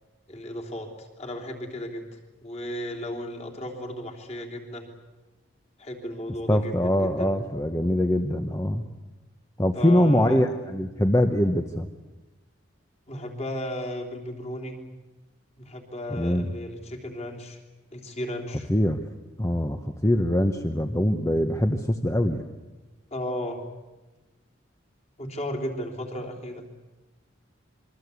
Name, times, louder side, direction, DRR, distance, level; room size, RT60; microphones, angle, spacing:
voice 1, 0.3-2.1 2.4-4.9 5.8-7.4 9.7-10.4 13.1-14.8 15.6-17.6 17.9-18.7 23.1-23.6 25.2-26.7, left 1 dB, 30° left, 1 dB, 3.5 m, -34 dB
voice 2, 6.5-8.9 9.6-11.9 16.1-16.5 18.7-19.0 19.4-22.4, left 1 dB, 15° left, 6 dB, 1.0 m, -23 dB
27.0 x 23.0 x 8.5 m, 1.1 s
head